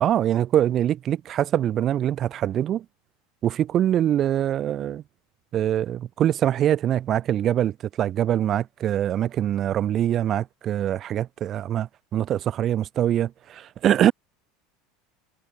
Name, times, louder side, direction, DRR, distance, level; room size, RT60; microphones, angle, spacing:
voice 1, 0.0-2.9 3.4-5.0 5.5-14.1, right 11 dB, 40° right, 0.8 m, -23 dB
hypercardioid pair, 75°, 0 cm